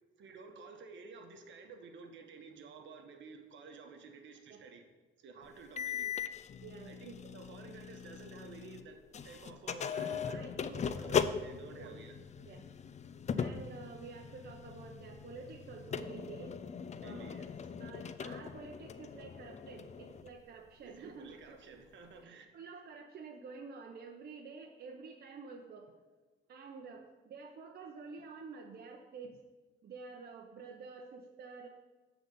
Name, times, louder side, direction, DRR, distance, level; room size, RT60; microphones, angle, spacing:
voice 1, 0.2-4.8 5.2-6.1 6.8-12.2 17.0-17.7 20.8-22.5, right 4 dB, 70° right, 5 dB, 1.1 m, -52 dB
sound 1, 5.8-8.8 9.1-20.3, left 7 dB, 35° left, 0.4 m, -39 dB
voice 2, 6.6-7.0 9.9-11.3 11.8-12.0 12.4-12.6 13.4-16.6 17.0-17.3 17.8-21.4 22.2-25.9 26.5-29.4 29.8-31.8, right 4 dB, 50° right, 2 dB, 0.8 m, -49 dB
7.8 x 4.0 x 6.9 m, 1.2 s
cardioid pair, 90°, 20 cm